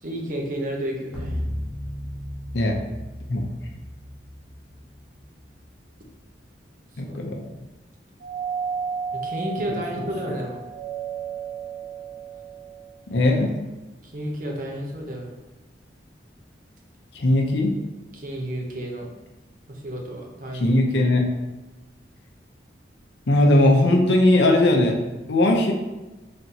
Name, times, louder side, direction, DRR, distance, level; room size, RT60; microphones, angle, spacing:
voice 1, 0.0-1.4 7.1-7.2 9.1-10.6 14.0-15.3 18.1-19.1 19.7-20.8, right 1 dB, 45° right, 0 dB, 0.7 m, -31 dB
sound 1, 1.1-5.6, equal, 5° right, 1.0 m, -35 dB
voice 2, 7.0-7.4 13.1-13.5 17.1-17.7 20.5-21.2 23.3-25.0 25.3-25.7, left 1 dB, 75° left, 1 dB, 0.6 m, -19 dB
Doorbell, 8.2-13.0, right 6 dB, 90° right, 1.2 m, -33 dB
4.1 x 3.4 x 2.7 m, 1.1 s
head